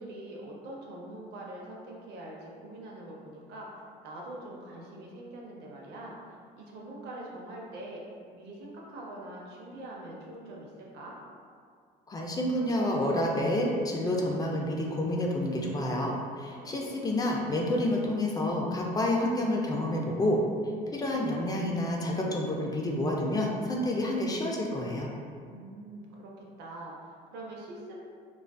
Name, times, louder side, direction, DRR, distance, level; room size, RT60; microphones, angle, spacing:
voice 1, 0.0-8.0 8.3-11.1 16.5-16.8 25.4-28.0, right 1 dB, 80° right, -2 dB, 0.5 m, -44 dB
voice 2, 12.1-20.4 20.9-25.1, left 1 dB, 20° left, -1 dB, 0.3 m, -29 dB
2.4 x 2.3 x 2.2 m, 2.1 s
cardioid pair, 110°, 17 cm